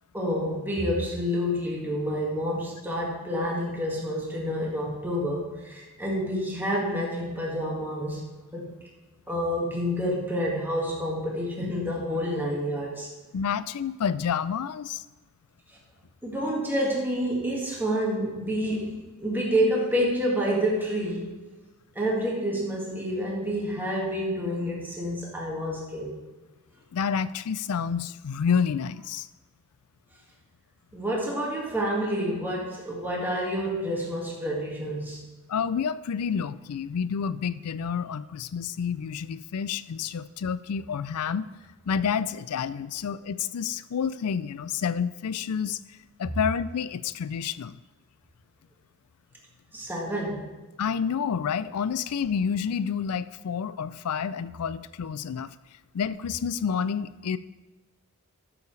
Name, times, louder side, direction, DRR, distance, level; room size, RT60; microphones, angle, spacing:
voice 1, 0.1-8.7 9.3-13.1 16.2-21.3 22.0-26.2 30.9-35.2 49.7-50.5, equal, 10° right, -3 dB, 1.9 m, -28 dB
voice 2, 13.3-15.0 26.9-29.3 35.5-41.5 41.9-45.8 46.2-47.8 50.8-55.5 55.9-57.4, left 7 dB, 90° left, 16 dB, 0.4 m, -29 dB
13.0 x 7.1 x 3.3 m, 1.2 s
head